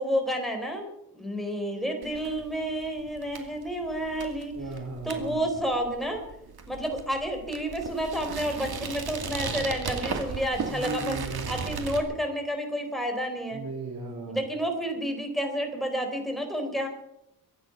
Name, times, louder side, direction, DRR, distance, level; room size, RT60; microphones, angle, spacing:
voice 1, 0.0-4.6 5.0-6.2 6.7-11.2 11.5-13.6 14.3-16.9, equal, ahead, 4 dB, 4.0 m, -30 dB
sound 1, 2.0-12.0, right 5 dB, 80° right, 2.5 m, -37 dB
voice 2, 4.5-5.4 10.6-11.6 13.5-14.4, right 3 dB, 60° right, 0 dB, 4.2 m, -36 dB
23.5 x 9.9 x 5.9 m, 0.81 s
wide cardioid pair, 120°, 37 cm